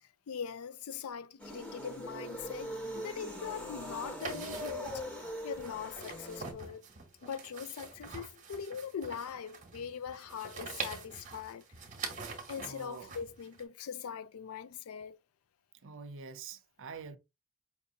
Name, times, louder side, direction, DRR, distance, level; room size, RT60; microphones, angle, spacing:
voice 1, 0.0-5.0 5.4-6.9 7.2-11.7 12.5-15.2, left 7 dB, 70° left, 0.4 m, -41 dB
sound 1, 1.4-6.5, equal, 5° left, 1.0 m, -42 dB
sound 2, 4.2-13.6, right 4 dB, 35° right, 1.0 m, -45 dB
voice 2, 12.6-13.1 15.8-17.2, right 5 dB, 60° right, 0.6 m, -46 dB
5.3 x 2.8 x 2.7 m
head